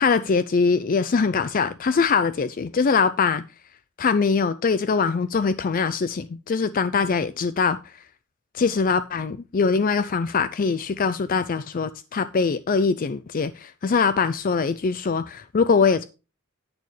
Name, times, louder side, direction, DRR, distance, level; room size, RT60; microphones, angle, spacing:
voice 1, 0.0-3.4 4.0-7.8 8.5-16.0, left 5 dB, 40° left, 0.4 m, -22 dB
10.5 x 8.6 x 3.2 m
head